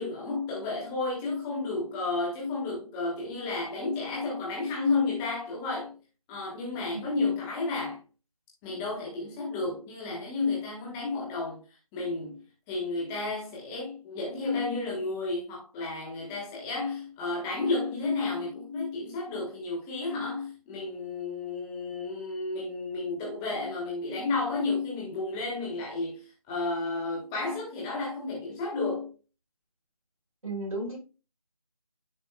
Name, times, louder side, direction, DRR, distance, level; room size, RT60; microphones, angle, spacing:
voice 1, 0.0-5.9 6.3-8.0 8.6-11.6 11.9-12.4 12.7-29.1, left 3 dB, 5° left, 1.1 m, -32 dB
voice 2, 6.9-7.3 30.4-31.0, right 2 dB, 70° right, 4.2 m, -35 dB
10.0 x 5.0 x 2.2 m
figure-of-eight pair, 170°, 19 cm